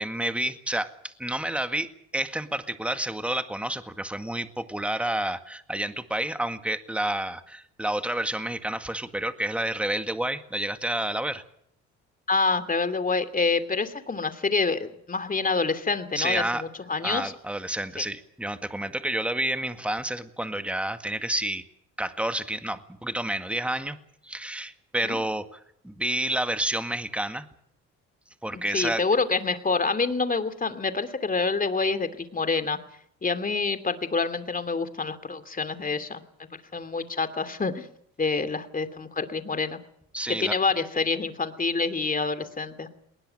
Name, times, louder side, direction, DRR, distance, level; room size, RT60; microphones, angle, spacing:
voice 1, 0.0-11.4 16.2-16.6 17.0-21.6 22.0-24.0 24.2-25.6 25.8-27.5 28.4-29.0 40.1-40.6, right 1 dB, 5° right, 9 dB, 1.9 m, -29 dB
voice 2, 12.3-17.3 25.0-25.2 28.5-32.8 33.2-37.9 38.2-39.8 40.4-42.9, left 4 dB, 25° left, 10 dB, 2.7 m, -27 dB
20.0 x 20.0 x 8.9 m, 0.69 s
supercardioid pair, 80°, 31 cm